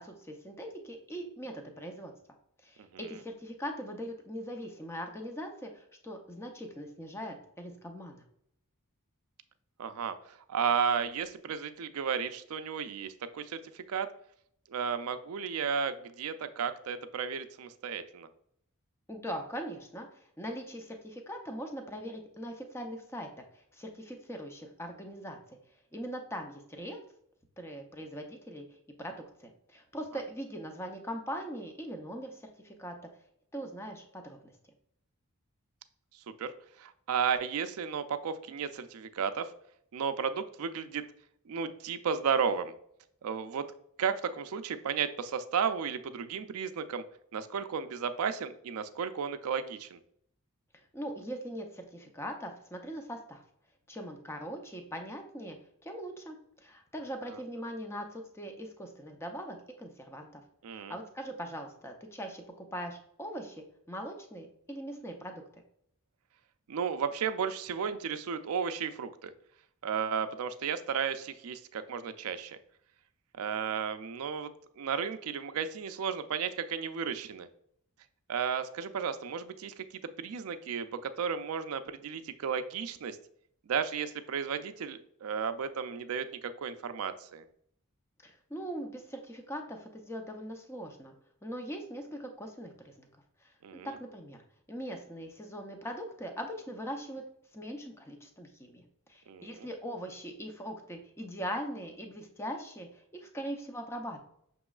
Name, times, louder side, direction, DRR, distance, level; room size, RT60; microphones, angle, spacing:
voice 1, 0.0-2.1 2.6-8.2 19.1-20.1 20.4-25.6 25.9-27.0 27.6-28.6 29.0-29.1 29.4-32.9 33.5-34.5 50.9-53.4 53.9-55.6 55.8-60.4 60.7-65.4 88.2-91.1 91.4-93.1 93.4-93.5 94.0-94.4 94.7-97.2 97.5-98.8 99.1-104.2, equal, 10° left, 4 dB, 0.6 m, -41 dB
voice 2, 2.8-3.2 9.8-14.1 14.7-18.3 36.4-36.5 36.8-39.5 39.9-41.0 41.5-42.7 43.2-43.7 44.0-47.0 47.3-50.0 60.6-60.9 66.7-69.3 69.8-72.6 73.4-77.5 78.3-79.8 80.2-83.2 83.7-87.4 93.6-93.9 99.3-99.7, right 6 dB, 70° right, 10 dB, 0.4 m, -33 dB
6.1 x 3.0 x 2.3 m, 0.70 s
head